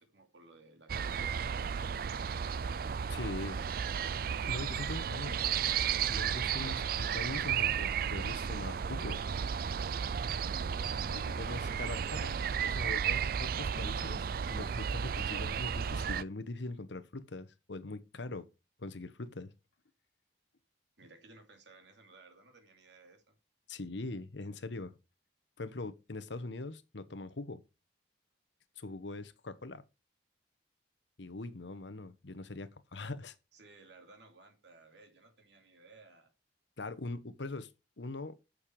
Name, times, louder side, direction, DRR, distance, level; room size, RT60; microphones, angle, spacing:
voice 1, 0.0-4.1 21.0-23.4 33.5-36.3, right 3 dB, 70° right, 2.7 m, -58 dB
sound 1, 0.9-16.2, right 7 dB, 50° right, 0.4 m, -33 dB
voice 2, 3.1-3.6 4.4-5.4 6.0-9.2 11.1-12.3 12.6-18.5 18.8-19.5 23.7-24.9 25.6-27.6 28.8-29.8 31.2-33.3 36.8-37.7 38.0-38.4, left 2 dB, 75° left, 1.0 m, -42 dB
8.7 x 6.5 x 5.1 m
head